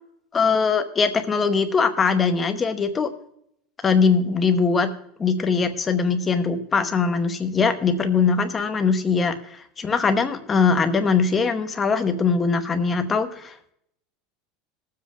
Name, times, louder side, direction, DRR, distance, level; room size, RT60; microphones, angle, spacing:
voice 1, 0.3-3.1 3.8-4.9 5.2-13.7, left 5 dB, 15° left, 7 dB, 0.9 m, -21 dB
20.0 x 7.6 x 3.6 m, 0.73 s
supercardioid pair, 170°, 0 cm